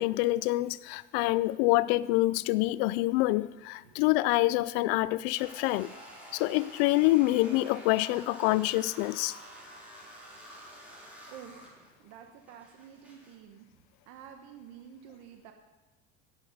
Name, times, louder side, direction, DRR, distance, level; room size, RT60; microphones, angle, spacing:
voice 1, 0.0-5.9 6.3-9.4, left 18 dB, 85° left, 0.5 m, -26 dB
sound 1, 5.4-13.3, equal, 5° right, 2.9 m, -49 dB
voice 2, 11.3-13.7 14.1-15.5, right 9 dB, 70° right, 1.1 m, -50 dB
17.0 x 5.9 x 6.7 m
cardioid pair, 145°, 29 cm